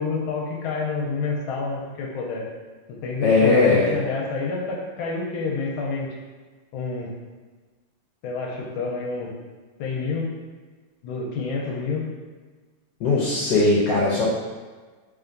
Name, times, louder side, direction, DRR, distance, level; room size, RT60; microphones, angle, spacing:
voice 1, 0.0-2.4 3.0-6.1 6.7-7.1 8.2-9.3 9.8-10.3 11.0-12.1, left 4 dB, 90° left, -2 dB, 1.5 m, -28 dB
voice 2, 3.2-3.9 13.0-14.3, left 3 dB, 70° left, -6 dB, 1.1 m, -19 dB
3.4 x 3.4 x 2.5 m, 1.4 s
omnidirectional pair, 2.2 m